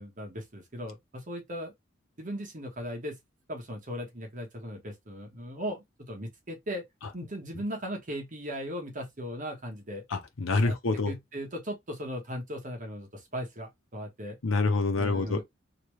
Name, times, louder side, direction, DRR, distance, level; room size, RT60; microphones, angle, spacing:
voice 1, 0.0-1.7 2.2-3.2 3.5-6.8 7.1-10.0 10.6-14.4 14.9-15.4, equal, 40° right, 1.1 m, -38 dB
voice 2, 10.1-11.1 14.4-15.4, left 3 dB, 90° left, 0.8 m, -26 dB
3.1 x 2.9 x 3.1 m
head